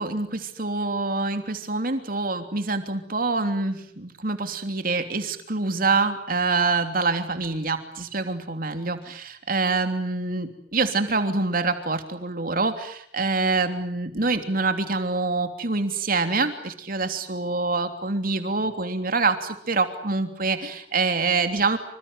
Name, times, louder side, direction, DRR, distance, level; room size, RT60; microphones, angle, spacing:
voice 1, 0.0-21.8, right 3 dB, 55° right, 7 dB, 3.2 m, -26 dB
27.5 x 26.0 x 8.1 m, 0.63 s
head